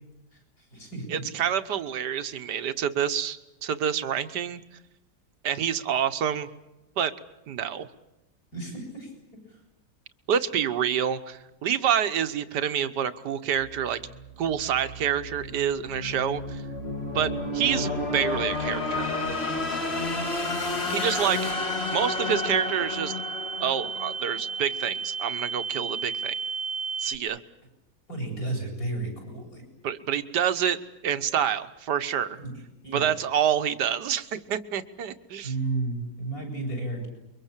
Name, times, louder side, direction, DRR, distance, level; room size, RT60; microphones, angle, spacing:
voice 1, 0.3-1.2 8.5-9.1 9.5-9.6 28.1-29.6 32.4-32.5 32.8-33.1 35.4-37.1, right 2 dB, 50° left, 3 dB, 8.6 m, -33 dB
voice 2, 1.1-4.6 5.4-6.5 7.0-7.1 7.5-7.9 10.3-14.0 14.4-16.6 17.1-19.1 20.9-23.1 23.6-26.3 27.0-27.4 29.8-30.8 31.0-32.4 32.9-35.5, right 9 dB, 70° right, 11 dB, 1.7 m, -27 dB
sound 1, 13.6-24.6, left 2 dB, 35° left, 2.4 m, -31 dB
sound 2, 18.3-27.2, right 5 dB, 90° right, 1.9 m, -35 dB
29.0 x 23.5 x 7.4 m, 0.94 s
omnidirectional pair, 1.9 m